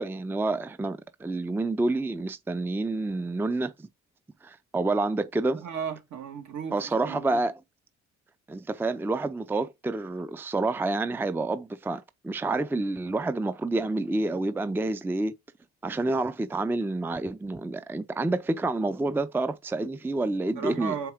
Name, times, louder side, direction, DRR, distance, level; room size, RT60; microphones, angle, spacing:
voice 1, 0.0-3.9 4.4-5.6 6.7-7.6 8.5-15.4 15.8-21.0, right 2 dB, 5° right, 0.4 m, -28 dB
voice 2, 5.6-7.4 20.6-21.1, right 7 dB, 70° right, 1.8 m, -35 dB
4.6 x 4.5 x 4.9 m
cardioid pair, 90°, 30 cm